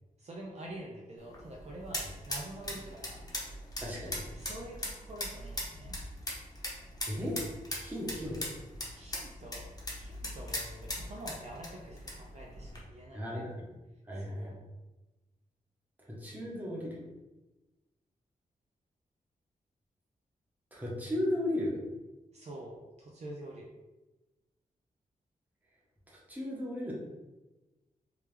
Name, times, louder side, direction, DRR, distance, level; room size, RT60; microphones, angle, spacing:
voice 1, 0.2-3.2 4.3-6.0 8.9-9.6 10.0-13.2 14.3-14.5 22.3-23.7, right 1 dB, 50° right, -2 dB, 0.5 m, -46 dB
sound 1, 1.2-12.8, left 1 dB, 25° left, 0.9 m, -41 dB
voice 2, 3.8-4.2 7.1-7.4 7.8-8.5 13.1-13.7 14.1-14.5 16.1-17.0 20.7-21.8 26.1-26.9, left 1 dB, 10° right, -5 dB, 1.0 m, -35 dB
3.3 x 3.2 x 3.3 m, 1.1 s
wide cardioid pair, 150°, 15 cm